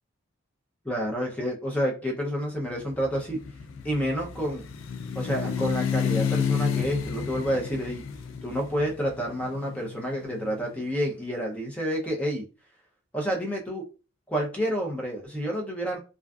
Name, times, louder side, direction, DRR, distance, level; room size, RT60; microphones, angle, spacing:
voice 1, 0.8-3.4 3.8-4.6 5.1-8.0 8.4-12.4 13.1-13.8 14.3-16.0, equal, 5° left, -1 dB, 0.5 m, -29 dB
sound 1, 2.9-10.9, left 7 dB, 65° left, 0.3 m, -31 dB
2.5 x 2.3 x 2.3 m, 0.34 s
head